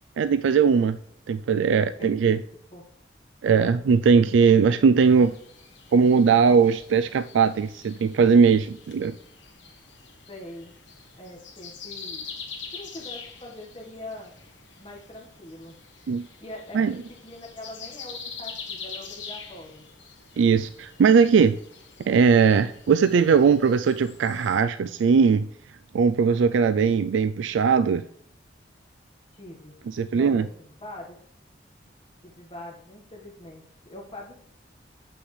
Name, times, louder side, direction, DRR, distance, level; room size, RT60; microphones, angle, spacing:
voice 1, 0.2-1.0 1.3-2.4 3.4-5.4 5.9-9.1 16.1-16.2 16.7-16.9 20.4-21.6 22.1-25.5 25.9-28.0 29.9-30.4, right 6 dB, 85° right, 11 dB, 0.3 m, -19 dB
voice 2, 1.7-2.4 2.7-2.9 10.3-10.7 11.1-12.3 12.7-14.3 14.8-15.8 16.4-19.9 29.3-29.8 30.1-31.2 32.2-34.3, left 1 dB, 30° left, -2 dB, 1.5 m, -43 dB
sound 1, 5.0-24.6, left 5 dB, 80° left, 1.6 m, -44 dB
8.0 x 6.1 x 3.3 m, 0.68 s
head